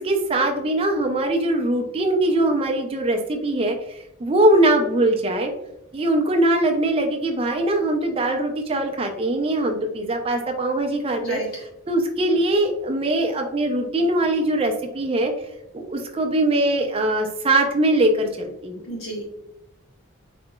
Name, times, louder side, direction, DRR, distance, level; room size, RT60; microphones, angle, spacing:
voice 1, 0.0-5.5 5.9-11.4 11.9-15.3 15.7-18.8, right 1 dB, 25° right, 3 dB, 0.4 m, -21 dB
voice 2, 18.9-19.2, equal, 75° left, -4 dB, 1.4 m, -31 dB
4.1 x 2.8 x 2.2 m, 0.87 s
head